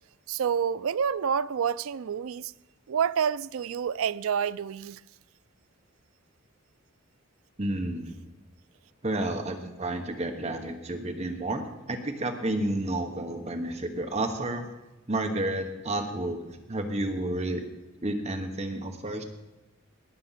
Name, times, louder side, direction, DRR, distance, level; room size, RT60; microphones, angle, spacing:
voice 1, 0.3-2.5 2.9-5.0, right 7 dB, 75° right, 0.4 m, -28 dB
voice 2, 7.6-8.3 9.0-14.6 15.1-17.6 18.0-19.2, right 1 dB, 30° right, 1.1 m, -31 dB
19.5 x 6.7 x 5.8 m
head